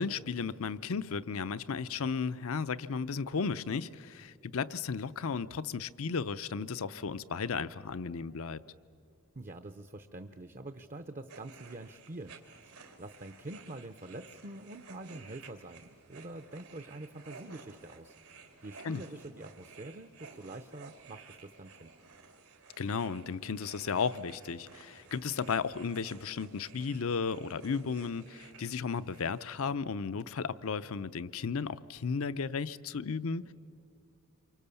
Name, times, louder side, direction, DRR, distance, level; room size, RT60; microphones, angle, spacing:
voice 1, 0.0-8.6 18.8-19.0 22.8-33.5, left 5 dB, 70° left, 15 dB, 0.6 m, -34 dB
voice 2, 9.3-12.3 12.6-18.1 18.6-21.9, right 2 dB, 35° right, 9 dB, 0.6 m, -46 dB
sound 1, 11.3-29.5, right 4 dB, 90° right, 2.9 m, -54 dB
27.5 x 24.5 x 7.0 m, 2.4 s
head